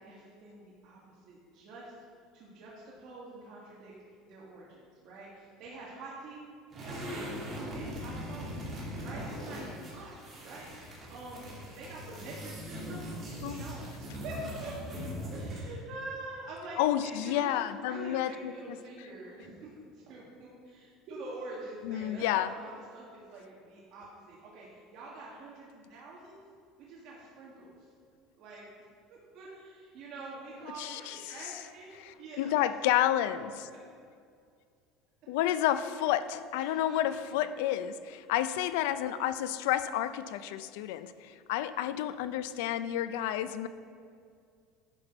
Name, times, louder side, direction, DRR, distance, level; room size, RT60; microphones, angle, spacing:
voice 1, 0.0-1.9 2.3-3.9 4.3-6.4 6.7-8.5 9.0-10.1 10.4-13.1 13.3-14.8 15.3-26.4 26.8-27.9 28.4-28.7 29.1-32.6 36.6-37.4, right 2 dB, 50° right, -6 dB, 1.8 m, -46 dB
sound 1, 6.7-15.8, equal, 25° right, 2.4 m, -40 dB
voice 2, 16.8-18.8 21.8-22.5 30.8-31.5 32.0-33.7 35.3-43.7, left 12 dB, 80° left, 13 dB, 0.4 m, -30 dB
11.0 x 5.8 x 4.5 m, 2.3 s
cardioid pair, 155°, 0 cm